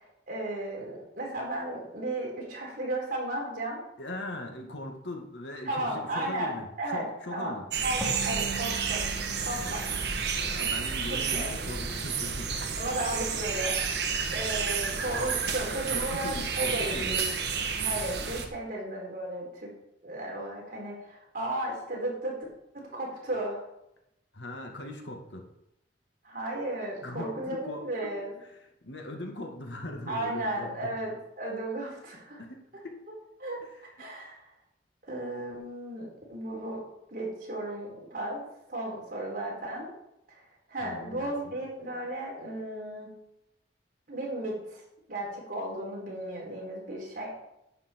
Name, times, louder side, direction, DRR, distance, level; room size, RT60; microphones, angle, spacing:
voice 1, 0.0-3.8 5.6-7.6 7.8-9.0 9.4-9.8 11.1-11.5 12.8-13.8 14.3-17.3 17.8-19.7 20.0-22.3 22.7-23.6 26.2-28.4 30.1-32.4 33.4-33.6 34.0-34.4 35.1-36.8 37.1-38.4 38.7-39.9 40.3-40.4 40.7-43.1 44.1-44.8 45.1-47.4, right 1 dB, 50° right, -2 dB, 4.4 m, -34 dB
voice 2, 4.0-7.7 9.6-10.0 10.5-12.7 15.9-17.2 24.3-25.5 27.0-27.9 28.4-31.0 32.4-33.0 33.6-34.0 40.8-41.6, left 1 dB, 85° left, 2 dB, 2.0 m, -40 dB
sound 1, 7.7-18.5, right 6 dB, 65° right, 1.4 m, -31 dB
sound 2, 8.0-11.5, right 3 dB, 5° right, 3.0 m, -41 dB
10.5 x 9.0 x 4.6 m, 0.85 s
head